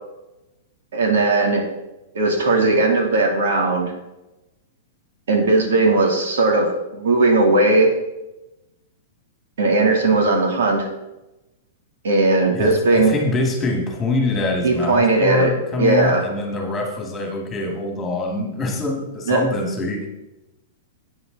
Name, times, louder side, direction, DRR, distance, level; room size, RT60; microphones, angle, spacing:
voice 1, 0.9-1.6 2.1-3.9 5.3-7.9 9.6-10.9 12.0-13.2 14.6-15.5 15.8-16.3 19.3-19.4, right 2 dB, 75° right, 2 dB, 3.1 m, -17 dB
voice 2, 12.5-20.1, left 2 dB, 10° left, 1 dB, 2.3 m, -24 dB
13.0 x 9.5 x 4.0 m, 0.96 s
supercardioid pair, 175°, 0 cm